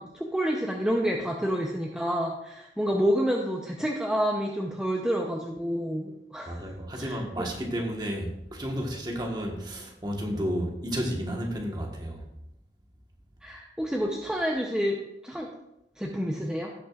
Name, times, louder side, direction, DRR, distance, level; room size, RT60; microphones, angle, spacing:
voice 1, 0.0-6.6 7.0-7.5 13.4-15.0 15.2-15.5 16.0-16.7, equal, 5° right, -1 dB, 0.7 m, -29 dB
voice 2, 6.5-12.2, equal, 25° right, 0 dB, 1.4 m, -32 dB
16.5 x 6.1 x 2.5 m, 0.87 s
head